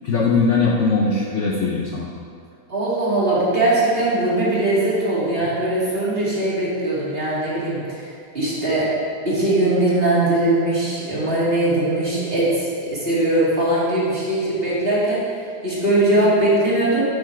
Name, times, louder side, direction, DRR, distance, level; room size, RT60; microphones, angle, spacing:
voice 1, 0.0-2.1, left 4 dB, 55° left, -4 dB, 1.0 m, -20 dB
voice 2, 2.7-8.0 8.3-8.9 9.3-15.2 15.6-17.0, right 1 dB, 35° right, -8 dB, 2.4 m, -20 dB
8.1 x 7.1 x 4.6 m, 2.2 s
omnidirectional pair, 1.9 m